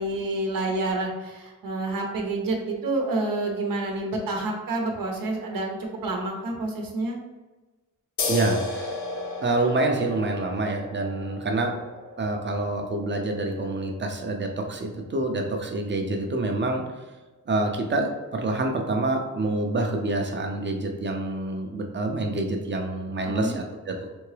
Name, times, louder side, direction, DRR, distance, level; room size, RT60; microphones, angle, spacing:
voice 1, 0.0-7.2 23.3-23.6, right 2 dB, 85° right, 0 dB, 0.8 m, -28 dB
sound 1, 8.2-15.3, left 2 dB, 60° left, 0.7 m, -35 dB
voice 2, 8.3-9.0 9.4-11.9 12.2-16.8 17.5-24.1, right 2 dB, 35° right, 3 dB, 0.6 m, -27 dB
3.7 x 3.5 x 3.3 m, 1.2 s
wide cardioid pair, 155°, 33 cm